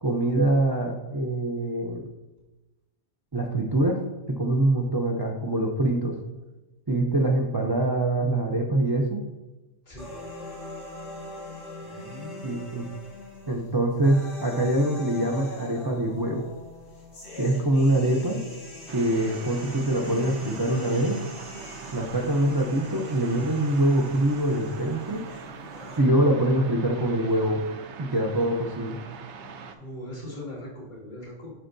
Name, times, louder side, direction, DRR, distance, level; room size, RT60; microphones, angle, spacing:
voice 1, 0.0-2.0 3.3-4.0 4.3-6.2 6.9-9.2 12.4-12.9 13.5-16.5 17.4-18.4 18.9-21.2 21.9-25.2 26.0-27.6 28.1-29.0, right 1 dB, 40° right, 0 dB, 0.3 m, -24 dB
sound 1, 10.0-26.0, left 2 dB, 80° left, 2.2 m, -42 dB
voice 2, 11.8-12.6 29.8-31.5, left 1 dB, 35° left, -7 dB, 2.3 m, -40 dB
sound 2, 18.9-29.8, right 5 dB, 70° right, 0.9 m, -42 dB
11.5 x 4.4 x 2.6 m, 1.1 s
omnidirectional pair, 1.3 m